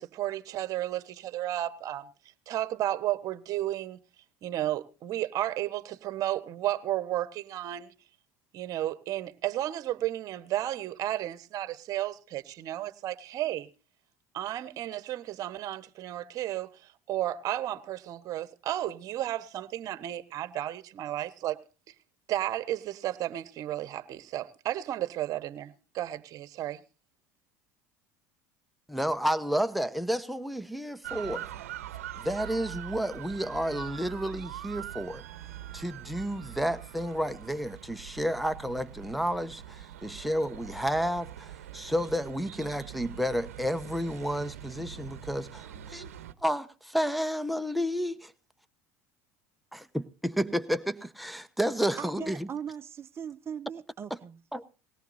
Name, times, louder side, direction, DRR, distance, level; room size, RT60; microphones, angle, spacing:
voice 1, 0.0-2.1 2.5-4.0 4.4-7.9 8.5-13.7 14.3-16.7 17.1-21.6 22.3-26.8, right 13 dB, 50° right, 1.2 m, -33 dB
voice 2, 28.9-31.5 32.2-35.2 35.7-46.1 46.4-48.3 49.7-52.5 54.5-54.7, equal, ahead, 1.1 m, -31 dB
sound 1, 31.0-46.3, right 11 dB, 85° right, 0.8 m, -43 dB
voice 3, 52.0-54.4, right 7 dB, 35° right, 0.7 m, -39 dB
20.0 x 17.5 x 2.7 m
hypercardioid pair, 80°, 8 cm